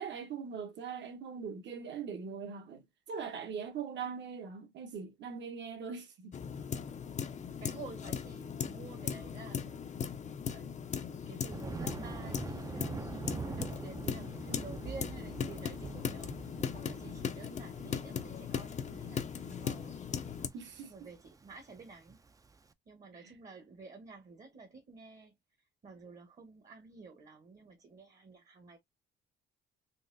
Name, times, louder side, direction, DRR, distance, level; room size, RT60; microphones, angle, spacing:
voice 1, 0.0-6.3 20.5-20.9, right 6 dB, 65° right, 1.2 m, -41 dB
sound 1, 6.3-20.5, left 7 dB, 35° left, 0.5 m, -39 dB
voice 2, 7.6-10.1 10.5-13.0 13.4-20.0 20.8-22.2 22.9-25.4 25.8-28.8, right 4 dB, 40° right, 1.0 m, -51 dB
Thunder, 11.5-22.6, right 4 dB, 15° right, 0.4 m, -45 dB
4.0 x 2.4 x 2.5 m
cardioid pair, 90°, 20 cm